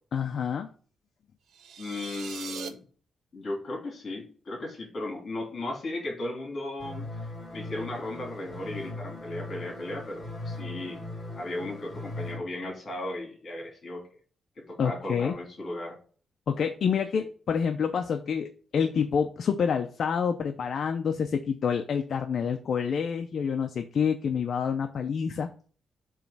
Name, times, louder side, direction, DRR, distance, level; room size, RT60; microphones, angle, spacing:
voice 1, 0.1-0.7 14.8-15.3 16.5-25.5, left 7 dB, 55° left, 6 dB, 0.5 m, -28 dB
sound 1, 1.5-2.7, right 7 dB, 90° right, 0.7 m, -40 dB
voice 2, 1.8-2.8 3.3-7.1 7.5-11.1 11.4-14.0 14.7-16.0 17.1-17.3, left 2 dB, 40° left, 0 dB, 3.0 m, -36 dB
sound 2, 6.8-12.4, left 2 dB, 20° left, 3.6 m, -39 dB
7.3 x 3.1 x 5.9 m, 0.43 s
wide cardioid pair, 150°, 0 cm